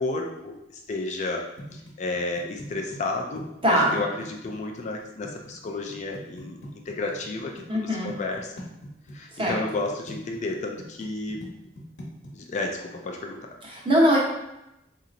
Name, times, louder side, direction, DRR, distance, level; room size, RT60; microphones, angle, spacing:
voice 1, 0.0-1.4 1.7-8.5 9.1-11.4 12.3-13.5, left 2 dB, 40° left, 1 dB, 0.3 m, -32 dB
sound 1, 1.6-7.6 8.1-9.2 9.5-12.3, equal, 90° left, 1.0 m, -42 dB
voice 2, 3.6-4.0 7.7-8.1 9.4-9.6 13.6-14.2, equal, 30° right, -5 dB, 0.9 m, -21 dB
4.1 x 2.8 x 2.5 m, 0.89 s
head